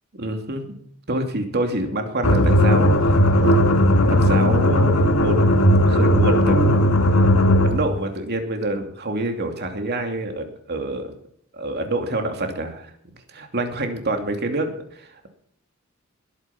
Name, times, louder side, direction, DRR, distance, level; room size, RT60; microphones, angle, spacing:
voice 1, 0.1-0.7 1.1-6.9 7.6-11.2 11.5-12.9 13.3-15.3, right 2 dB, 50° right, 4 dB, 2.8 m, -27 dB
sound 1, 2.2-7.9, left 1 dB, 75° left, 1.8 m, -16 dB
21.0 x 9.1 x 6.0 m, 0.67 s
head